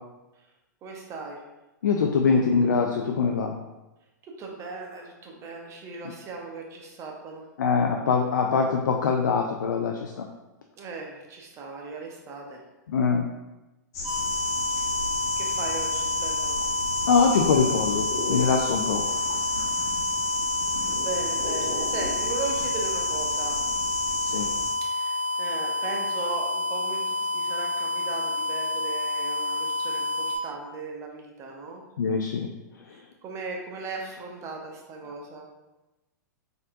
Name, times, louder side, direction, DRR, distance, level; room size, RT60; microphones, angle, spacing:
voice 1, 0.8-1.4 4.2-7.4 10.8-12.6 15.4-16.6 18.6-18.7 21.0-23.6 24.8-31.8 32.9-35.5, right 3 dB, 30° right, 0 dB, 0.8 m, -37 dB
voice 2, 1.8-3.5 7.6-10.3 12.9-13.3 17.1-19.0 24.2-24.5 32.0-32.5, left 5 dB, 75° left, 2 dB, 0.4 m, -23 dB
sound 1, 13.9-24.7, left 2 dB, 55° left, 1.1 m, -32 dB
sound 2, 14.0-30.4, left 2 dB, 10° right, 1.5 m, -29 dB
4.2 x 3.8 x 2.5 m, 1.0 s
figure-of-eight pair, 105°, 10 cm